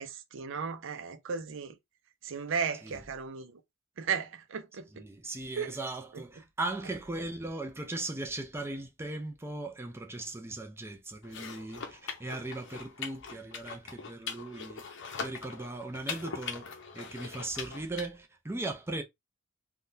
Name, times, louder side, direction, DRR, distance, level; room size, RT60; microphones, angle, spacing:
voice 1, 0.0-1.7 2.2-3.6 4.0-4.8 5.6-5.7, right 6 dB, 60° right, 0.6 m, -35 dB
voice 2, 4.9-14.9 15.2-19.0, right 2 dB, 10° right, 0.5 m, -38 dB
sound 1, 11.2-18.1, left 5 dB, 60° left, 0.7 m, -41 dB
3.6 x 2.3 x 2.6 m
head